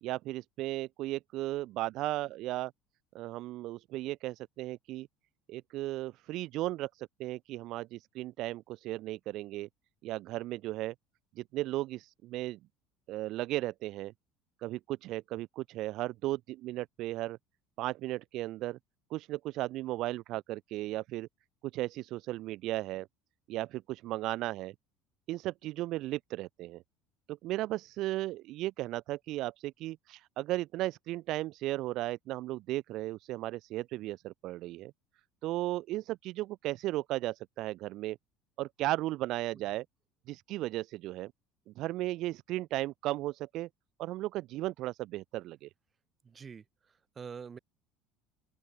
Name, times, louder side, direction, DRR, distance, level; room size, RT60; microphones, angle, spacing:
voice 1, 0.0-2.7 3.1-5.1 5.5-9.7 10.0-10.9 11.4-12.6 13.1-14.1 14.6-17.4 17.8-18.8 19.1-21.3 21.7-23.1 23.5-24.7 25.3-26.8 27.3-34.9 35.4-38.2 38.6-39.8 40.3-41.3 41.7-43.7 44.0-45.7, right 16 dB, 55° right, 1.1 m, -35 dB
voice 2, 46.2-47.6, right 6 dB, 25° right, 7.5 m, -46 dB
open air
cardioid pair, 140°, 0 cm